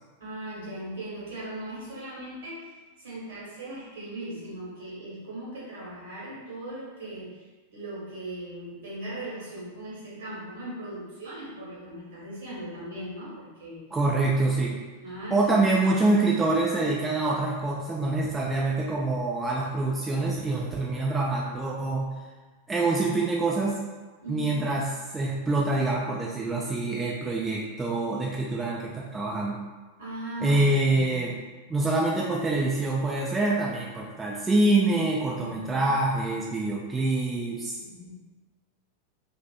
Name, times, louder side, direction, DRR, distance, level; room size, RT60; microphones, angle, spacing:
voice 1, 0.2-2.7 3.0-7.4 7.7-13.9 15.0-15.5 24.2-24.7 30.0-31.2 35.4-35.9 37.7-38.2, right 1 dB, 60° right, -7 dB, 1.1 m, -38 dB
voice 2, 13.9-14.8 15.3-22.1 22.7-23.8 24.3-24.8 25.1-29.6 30.4-31.3 31.7-37.8, right 2 dB, 15° right, -4 dB, 0.3 m, -25 dB
2.4 x 2.4 x 2.3 m, 1.3 s
figure-of-eight pair, 90°, 0 cm